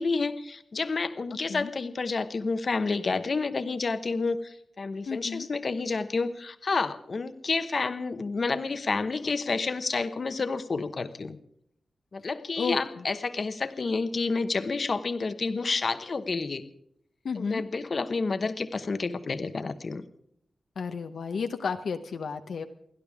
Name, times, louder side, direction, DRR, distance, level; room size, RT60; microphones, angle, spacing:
voice 1, 0.0-11.4 12.1-16.6 17.3-20.0, left 4 dB, 50° left, 10 dB, 1.1 m, -29 dB
voice 2, 5.1-5.5 12.6-12.8 17.2-17.6 20.8-22.6, left 5 dB, 80° left, 6 dB, 1.0 m, -32 dB
29.0 x 11.5 x 3.6 m, 0.73 s
wide cardioid pair, 90°, 0 cm